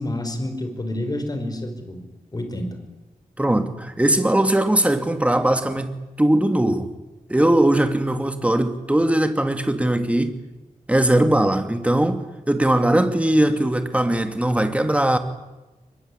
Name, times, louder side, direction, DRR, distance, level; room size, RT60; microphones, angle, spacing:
voice 1, 0.0-2.0 2.3-2.8, left 1 dB, 25° left, 5.0 m, -28 dB
voice 2, 3.4-6.9 7.3-10.4 10.9-15.2, right 1 dB, 10° right, 2.3 m, -20 dB
23.5 x 23.0 x 9.9 m
wide cardioid pair, 115°, 14 cm